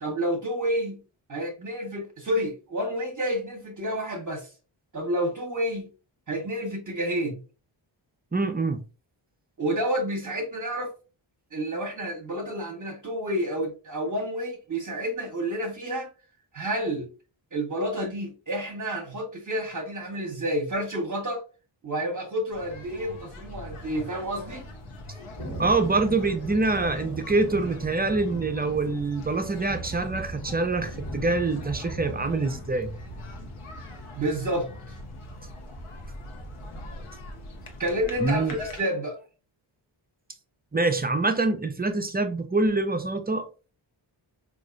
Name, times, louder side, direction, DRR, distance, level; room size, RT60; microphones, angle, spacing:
voice 1, 0.0-1.0 1.3-4.5 4.9-5.9 6.3-7.4 9.6-10.9 11.5-16.1 16.5-17.1 17.5-21.4 21.8-24.6 34.2-34.7 37.8-39.2, equal, 40° right, 0.8 m, -29 dB
voice 2, 8.3-8.8 25.6-32.9 38.2-38.6 40.7-43.4, right 3 dB, 20° right, 0.4 m, -25 dB
sound 1, 22.5-38.8, left 1 dB, 90° left, 0.9 m, -42 dB
Thunder, 25.4-36.9, right 1 dB, 50° left, 1.3 m, -40 dB
4.1 x 2.5 x 2.4 m
wide cardioid pair, 90°, 49 cm